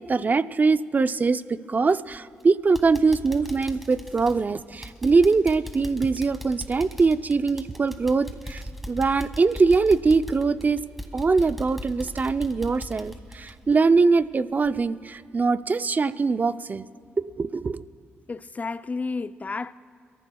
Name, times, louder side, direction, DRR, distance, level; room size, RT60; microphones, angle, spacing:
voice 1, 0.0-10.8 11.1-16.8 17.2-17.8, right 4 dB, 35° right, 0.5 m, -22 dB
sound 1, 2.1-2.4 2.7-14.3 14.6-14.8 15.3-15.4, left 1 dB, ahead, 1.9 m, -39 dB
voice 2, 18.3-19.7, left 4 dB, 35° left, 0.4 m, -31 dB
27.5 x 14.5 x 2.3 m
cardioid pair, 65°, 5 cm